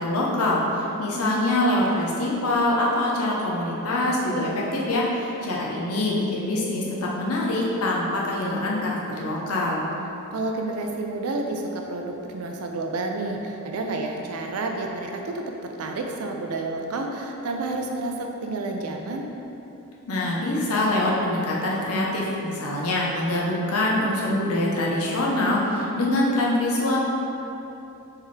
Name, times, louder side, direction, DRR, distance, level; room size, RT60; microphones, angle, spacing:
voice 1, 0.0-9.9 20.1-27.0, left 1 dB, 90° left, -4 dB, 0.8 m, -24 dB
voice 2, 10.3-19.3, right 2 dB, 85° right, 2 dB, 0.5 m, -30 dB
4.5 x 3.5 x 3.3 m, 2.9 s
head